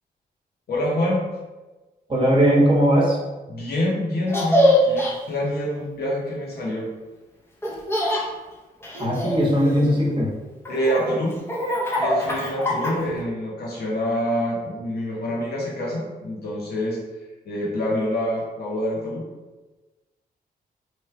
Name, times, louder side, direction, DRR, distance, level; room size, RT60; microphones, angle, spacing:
voice 1, 0.7-1.2 3.5-6.9 10.7-11.4 11.9-17.0 17.4-19.2, equal, 70° left, -3 dB, 1.1 m, -26 dB
voice 2, 2.1-3.2 9.0-10.3, equal, 30° right, -4 dB, 1.1 m, -19 dB
Laughter, 4.3-5.1 7.6-8.2 8.8-10.1 10.6-13.2, left 1 dB, 15° left, 0.8 m, -23 dB
3.2 x 2.3 x 4.3 m, 1.2 s
wide cardioid pair, 125°, 17 cm